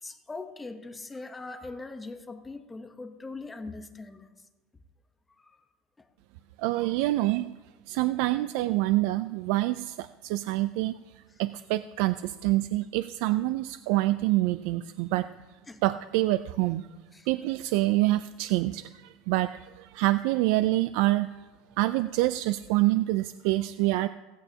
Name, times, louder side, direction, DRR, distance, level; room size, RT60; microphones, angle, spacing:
voice 1, 0.0-4.3 15.7-15.8 17.1-17.3, left 3 dB, 10° left, 7 dB, 1.0 m, -41 dB
voice 2, 6.6-7.5 7.9-10.9 11.4-15.2 15.8-16.8 17.3-21.3 21.8-24.1, right 17 dB, 65° right, 13 dB, 0.4 m, -26 dB
17.0 x 15.5 x 2.8 m, 1.2 s
supercardioid pair, 145°, 0 cm